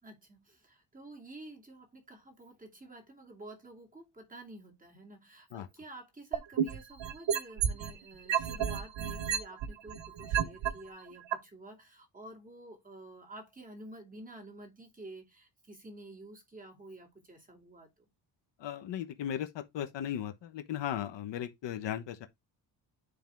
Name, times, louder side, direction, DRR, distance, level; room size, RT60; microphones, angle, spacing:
voice 1, 0.0-18.1, right 2 dB, 20° right, 2.6 m, -50 dB
sound 1, 6.3-7.9 8.3-10.7 11.3-11.4, right 9 dB, 80° right, 1.2 m, -30 dB
voice 2, 18.6-22.3, left 10 dB, 80° left, 1.2 m, -37 dB
9.9 x 3.6 x 3.5 m
cardioid pair, 115°, 43 cm